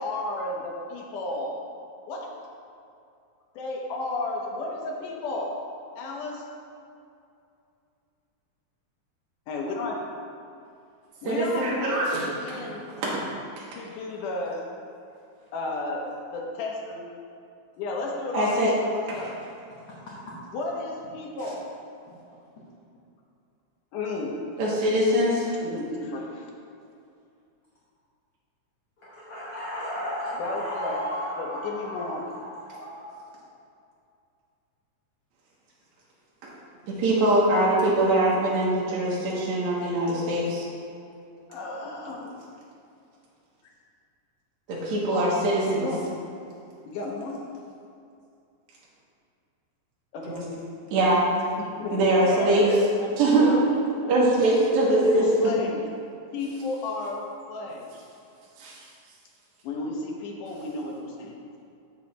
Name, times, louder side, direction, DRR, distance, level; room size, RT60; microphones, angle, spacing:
voice 1, 0.0-1.6 2.1-2.3 3.5-5.5 6.0-6.4 9.5-10.0 11.2-12.9 13.8-14.6 15.5-16.1 16.3-17.1 17.8-19.3 20.5-21.6 23.9-24.4 25.6-26.5 30.4-31.0 31.4-32.3 41.5-42.4 45.6-46.1 46.9-47.4 50.1-50.6 51.6-53.7 54.0-54.2 55.0-55.8 56.3-57.9 59.6-61.4, left 2 dB, 80° left, -1 dB, 2.6 m, -33 dB
voice 2, 11.3-12.2 12.5-13.2 18.3-18.7 19.2-19.3 24.6-25.5 36.9-40.7 44.7-45.9 50.3-50.4 50.9-51.3 51.9-52.7 53.2-53.7 54.1-55.3 58.6-58.8, right 1 dB, 70° right, -6 dB, 2.4 m, -23 dB
voice 3, 29.0-33.2, equal, 55° left, -8 dB, 1.7 m, -34 dB
7.8 x 6.6 x 4.1 m, 2.5 s
omnidirectional pair, 3.6 m